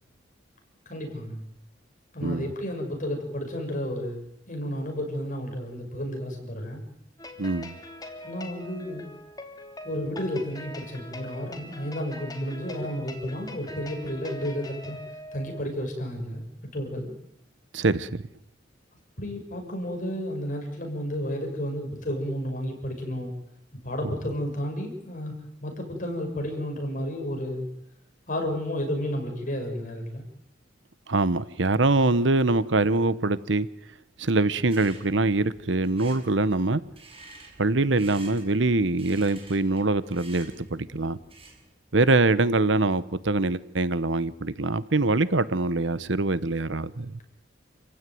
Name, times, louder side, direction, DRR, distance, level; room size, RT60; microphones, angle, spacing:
voice 1, 0.9-1.4 2.1-6.8 8.2-9.1 9.8-15.0 15.3-16.4 16.7-17.1 19.2-23.3 23.8-25.3 25.6-27.7 28.3-30.2, equal, 45° left, 3 dB, 6.9 m, -32 dB
sound 1, 7.2-15.6, left 1 dB, 20° left, 3.0 m, -42 dB
voice 2, 7.4-7.7 17.7-18.2 31.1-33.7 34.2-36.8 37.6-41.2 41.9-47.1, right 2 dB, 70° right, 16 dB, 1.1 m, -24 dB
sound 2, 34.6-41.7, right 3 dB, 30° right, 6.8 m, -50 dB
29.0 x 16.0 x 9.4 m, 0.79 s
head